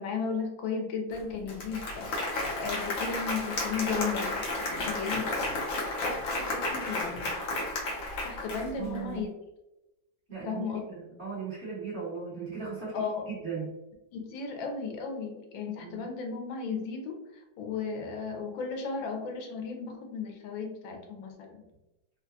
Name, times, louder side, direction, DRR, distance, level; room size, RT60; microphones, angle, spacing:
voice 1, 0.0-4.4 4.7-7.3 8.2-9.3 10.4-10.8 12.9-13.3 14.1-21.6, left 5 dB, 90° left, 3 dB, 1.4 m, -35 dB
Applause, 1.1-1.2 1.5-9.0, left 2 dB, 60° left, 0.9 m, -32 dB
voice 2, 8.8-9.3 10.3-10.7 11.0-13.0 13.3-13.7 15.8-16.1, right 5 dB, 35° right, -8 dB, 1.5 m, -37 dB
3.8 x 2.2 x 2.7 m, 0.96 s
omnidirectional pair, 2.1 m